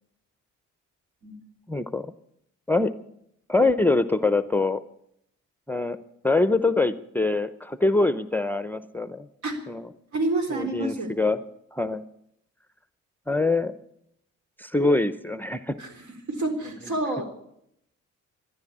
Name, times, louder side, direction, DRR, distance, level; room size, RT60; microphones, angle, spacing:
voice 1, 1.7-2.1 2.7-2.9 3.5-4.8 5.7-6.0 6.2-9.3 9.7-9.8 10.5-11.4 11.7-12.0 13.3-13.7 14.6-15.8, left 2 dB, 5° left, 13 dB, 0.6 m, -24 dB
voice 2, 10.1-11.1 15.8-17.2, right 2 dB, 70° right, 6 dB, 3.8 m, -28 dB
13.5 x 11.0 x 8.6 m, 0.74 s
cardioid pair, 90°, 30 cm